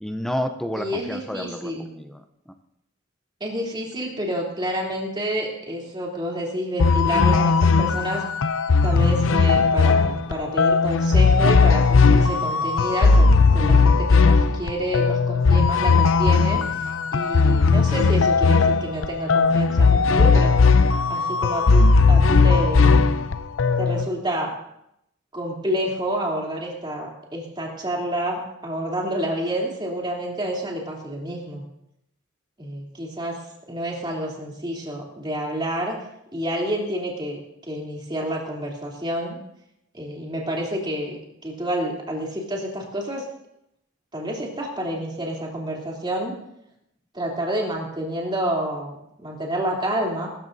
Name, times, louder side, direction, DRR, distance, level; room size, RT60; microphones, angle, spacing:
voice 1, 0.0-2.2, equal, ahead, 6 dB, 0.6 m, -30 dB
voice 2, 0.7-1.8 3.4-8.2 8.8-20.5 21.1-23.1 23.8-24.5 25.3-31.6 32.6-33.4 33.7-36.0 36.3-39.4 39.9-43.3 44.1-46.3 47.1-50.3, right 1 dB, 25° right, -2 dB, 3.1 m, -29 dB
sound 1, 6.8-24.1, left 4 dB, 80° left, 0.6 m, -17 dB
23.0 x 13.5 x 2.7 m, 0.80 s
head